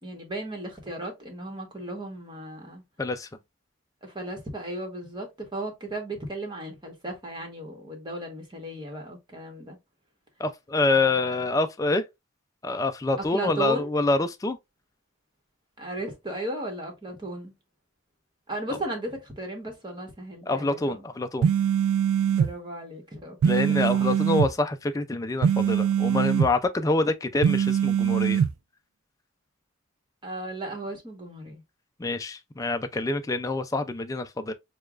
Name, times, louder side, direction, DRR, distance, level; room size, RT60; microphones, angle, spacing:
voice 1, 0.0-2.8 4.0-9.8 10.8-11.5 13.2-13.9 15.8-17.5 18.5-21.0 22.2-23.4 23.7-24.2 30.2-31.6, right 2 dB, 20° right, 1.2 m, -35 dB
voice 2, 10.4-12.0 12.6-14.6 20.5-21.5 23.4-28.4 32.0-34.5, left 2 dB, 15° left, 0.3 m, -26 dB
sound 1, 21.4-22.5 23.4-24.5 25.4-26.5 27.4-28.5, right 8 dB, 85° right, 0.3 m, -22 dB
6.5 x 2.3 x 2.4 m
head